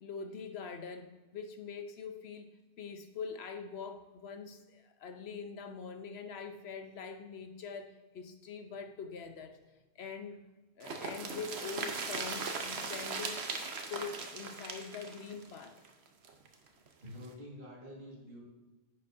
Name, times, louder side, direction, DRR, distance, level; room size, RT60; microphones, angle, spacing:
voice 1, 0.0-2.5 2.8-9.6 10.0-10.4 10.8-13.4 13.9-15.8, left 5 dB, 70° left, 7 dB, 1.0 m, -44 dB
sound 1, 10.8-16.5 16.9-17.0 17.2-17.3, right 4 dB, 70° right, 1.1 m, -39 dB
voice 2, 17.0-18.4, equal, 50° right, -3 dB, 2.0 m, -48 dB
9.9 x 6.6 x 2.6 m, 1.2 s
omnidirectional pair, 1.1 m